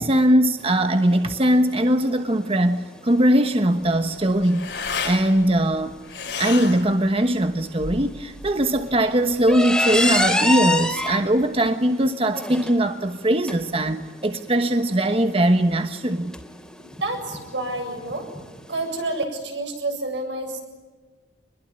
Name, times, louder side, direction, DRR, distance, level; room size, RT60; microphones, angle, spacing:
voice 1, 0.0-6.0 6.4-16.4, right 1 dB, 35° right, 8 dB, 1.2 m, -20 dB
sound 1, 0.6-19.2, left 1 dB, 5° left, 2.9 m, -30 dB
sound 2, 3.8-11.7, left 5 dB, 75° left, 4.9 m, -34 dB
voice 2, 16.8-18.3 18.7-20.6, right 2 dB, 80° right, 3 dB, 7.6 m, -29 dB
26.0 x 22.0 x 9.9 m, 1.3 s
head